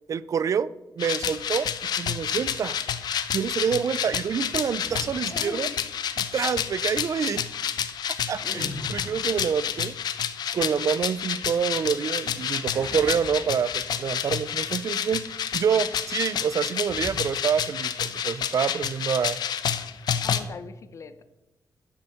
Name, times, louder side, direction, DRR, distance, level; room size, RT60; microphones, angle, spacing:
voice 1, 0.1-0.7 1.0-1.7 2.0-2.8 3.3-5.7 6.2-7.5 8.3-10.0 10.5-15.3 15.5-19.4, right 7 dB, 50° right, 17 dB, 0.5 m, -27 dB
sound 1, 1.0-20.4, left 8 dB, 85° left, 0.8 m, -29 dB
sound 2, 4.8-5.4 8.3-9.4 12.7-14.1 14.6-14.8 16.8-17.3, left 1 dB, 10° right, 2.3 m, -40 dB
voice 2, 5.3-5.8 8.4-8.6 20.2-21.2, left 5 dB, 45° left, 12 dB, 0.7 m, -40 dB
11.5 x 7.0 x 7.0 m, 0.97 s
wide cardioid pair, 155°, 7 cm